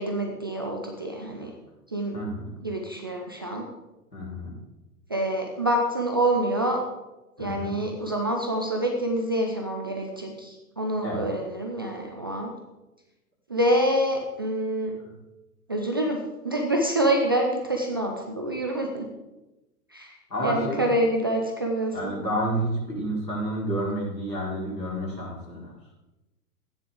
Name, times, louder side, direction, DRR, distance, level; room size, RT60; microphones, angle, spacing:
voice 1, 0.0-1.5 1.9-2.1 2.6-3.7 5.1-6.8 7.4-12.5 13.5-14.9 15.7-19.1 19.9-20.1 20.4-22.2, right 1 dB, 15° right, 2 dB, 0.3 m, -26 dB
voice 2, 2.1-2.5 4.1-4.5 7.4-7.7 11.0-11.2 20.3-20.9 21.9-25.7, right 1 dB, 85° left, -5 dB, 4.9 m, -30 dB
14.0 x 9.6 x 3.7 m, 1.0 s
figure-of-eight pair, 110°, 49 cm